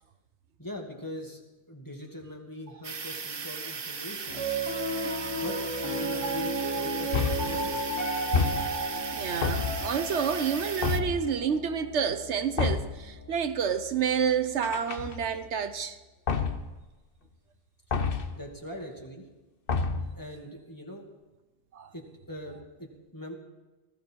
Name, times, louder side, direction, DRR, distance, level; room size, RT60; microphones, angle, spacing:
voice 1, 0.6-1.4 1.7-4.4 5.3-7.8 18.3-19.2 20.2-21.0 21.9-23.4, equal, 15° left, 2.3 m, -42 dB
sound 1, 2.8-11.0, right 5 dB, 35° right, 0.5 m, -38 dB
Piano, 4.3-14.6, right 2 dB, 90° left, 3.9 m, -34 dB
sound 2, 7.1-7.7 8.3-9.0 9.4-10.0 10.8-11.3 12.6-13.1 14.6-15.4 16.3-16.8 17.9-18.4 19.7-20.2, left 5 dB, 55° left, 1.1 m, -29 dB
voice 2, 9.1-16.0 21.7-21.9, right 7 dB, 75° right, 1.1 m, -29 dB
19.0 x 15.0 x 4.7 m
omnidirectional pair, 1.2 m